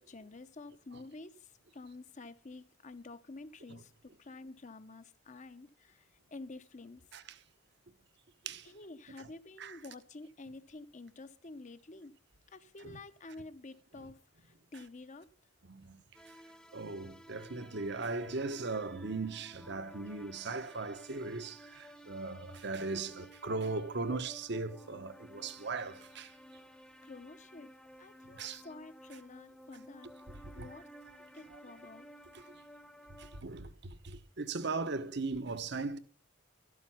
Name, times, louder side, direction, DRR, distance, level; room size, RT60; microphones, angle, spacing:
voice 1, 0.0-7.0 8.6-12.2 12.5-15.3 27.0-27.7 28.0-30.1 30.5-30.9 31.3-32.1, left 3 dB, 40° left, 0.8 m, -50 dB
sound 1, 16.1-33.4, equal, 5° left, 0.9 m, -55 dB
voice 2, 16.7-26.3 28.4-28.6 30.6-30.7 33.4-33.7 34.0-36.0, right 3 dB, 60° right, 1.0 m, -38 dB
13.0 x 12.5 x 5.7 m
head